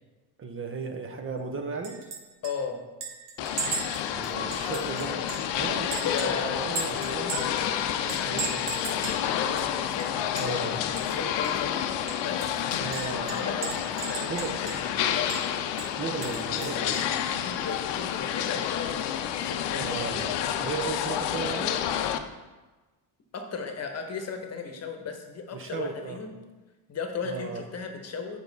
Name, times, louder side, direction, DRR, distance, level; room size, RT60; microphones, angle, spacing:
voice 1, 0.4-2.0 4.1-5.3 5.5-7.6 8.3-8.7 10.4-10.8 12.7-13.8 14.3-14.6 16.0-17.1 19.8-21.8 25.5-26.2 27.2-27.6, right 4 dB, 30° right, 5 dB, 0.7 m, -36 dB
Chink clink, 1.8-2.2 2.4-2.5 3.0-5.5 5.9-7.6 8.1-9.2 9.6-9.7 10.0-10.7 11.0-11.1 11.4-11.5 12.1-15.0 15.3-15.4 15.8-17.2, right 5 dB, 75° right, 1.5 m, -36 dB
voice 2, 2.4-2.8 4.5-4.9 5.9-7.2 7.7-11.8 12.2-12.6 13.3-15.4 17.3-20.0 23.3-26.3 26.9-28.4, left 5 dB, 35° left, 5 dB, 1.0 m, -37 dB
sound 1, 3.4-22.2, left 9 dB, 75° left, 0.6 m, -29 dB
7.1 x 5.1 x 4.0 m, 1.2 s
cardioid pair, 110°, 43 cm